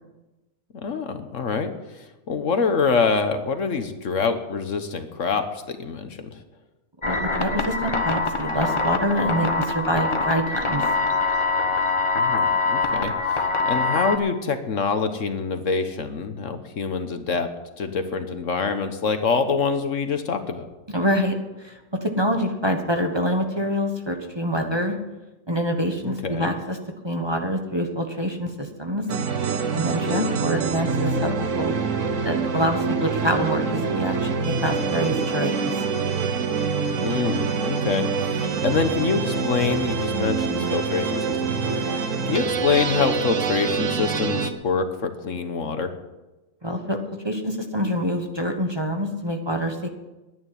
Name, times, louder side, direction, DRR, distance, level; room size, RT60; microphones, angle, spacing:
voice 1, 0.7-6.3 12.1-17.5 17.8-20.7 26.0-26.5 30.1-30.3 37.0-41.9 42.3-45.9, left 5 dB, 65° left, 8 dB, 1.5 m, -25 dB
sound 1, 7.0-14.2, left 3 dB, 25° left, 1.0 m, -24 dB
voice 2, 7.0-10.8 20.9-25.0 25.5-26.8 27.0-29.1 29.7-31.8 32.2-35.7 46.6-47.0 47.2-49.9, equal, 20° right, 3 dB, 1.3 m, -26 dB
sound 2, 29.1-44.5, right 5 dB, 70° right, 1.5 m, -25 dB
11.0 x 9.9 x 9.3 m, 1.1 s
omnidirectional pair, 1.4 m